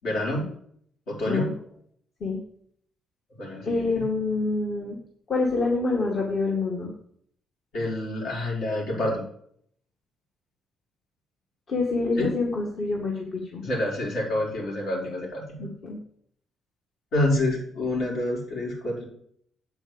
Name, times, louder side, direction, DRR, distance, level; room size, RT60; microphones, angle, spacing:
voice 1, 0.0-0.5 1.1-1.5 3.4-3.9 7.7-9.2 12.2-12.3 13.6-15.7 17.1-19.0, left 1 dB, 75° left, -3 dB, 5.3 m, -27 dB
voice 2, 3.7-5.0 5.3-6.9 11.7-13.6 15.6-16.0, left 3 dB, 55° left, -1 dB, 2.0 m, -26 dB
8.2 x 6.3 x 7.2 m, 0.64 s
cardioid pair, 90°, 0 cm